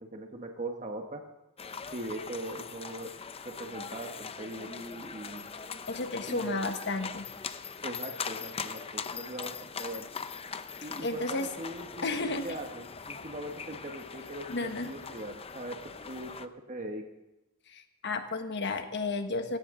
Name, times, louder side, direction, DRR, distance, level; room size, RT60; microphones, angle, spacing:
voice 1, 0.1-1.2 1.9-3.1 3.4-5.4 6.3-6.7 7.8-10.1 10.8-12.2 12.4-15.8 16.1-17.0, right 1 dB, 35° right, 3 dB, 1.2 m, -40 dB
sound 1, 1.6-16.5, left 6 dB, 25° left, 0.6 m, -41 dB
voice 2, 5.9-7.3 11.0-11.5 12.0-12.5 14.5-14.9 17.7-19.6, left 3 dB, 55° left, 7 dB, 1.4 m, -32 dB
18.0 x 16.5 x 3.8 m, 0.96 s
head